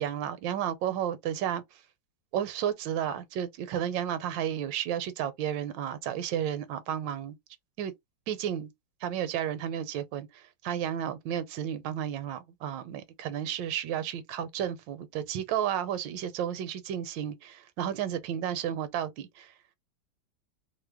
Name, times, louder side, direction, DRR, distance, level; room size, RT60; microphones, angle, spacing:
voice 1, 0.0-1.6 2.3-7.4 7.8-7.9 8.3-8.7 9.0-19.5, right 10 dB, 80° right, 1.3 m, -32 dB
3.1 x 2.0 x 3.4 m
omnidirectional pair, 2.0 m